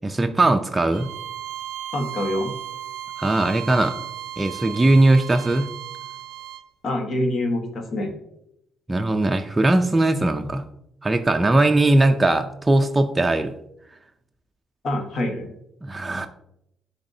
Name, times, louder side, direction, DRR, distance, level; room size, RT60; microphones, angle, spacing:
voice 1, 0.0-1.1 3.2-4.0 4.4-5.7 8.9-10.7 11.0-13.5 15.8-16.3, right 2 dB, 15° right, 5 dB, 0.4 m, -19 dB
Bowed string instrument, 0.9-6.7, right 12 dB, 90° right, 0.4 m, -35 dB
voice 2, 1.9-2.5 6.8-8.1 14.8-15.5, left 1 dB, 60° left, 4 dB, 1.2 m, -25 dB
10.0 x 3.5 x 2.6 m, 0.78 s
cardioid pair, 90°, 0 cm